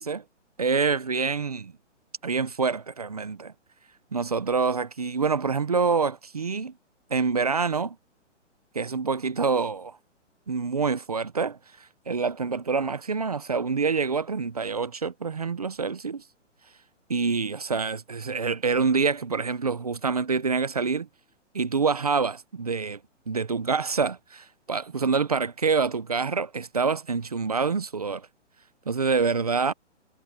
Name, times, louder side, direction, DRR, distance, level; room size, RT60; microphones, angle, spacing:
voice 1, 0.6-1.7 2.2-3.5 4.1-6.7 7.1-8.0 8.7-10.0 10.5-11.6 12.1-16.2 17.1-21.1 21.5-23.0 23.3-28.2 28.9-29.7, right 5 dB, 35° right, 0.5 m, -26 dB
hypercardioid pair, 180°, 36 cm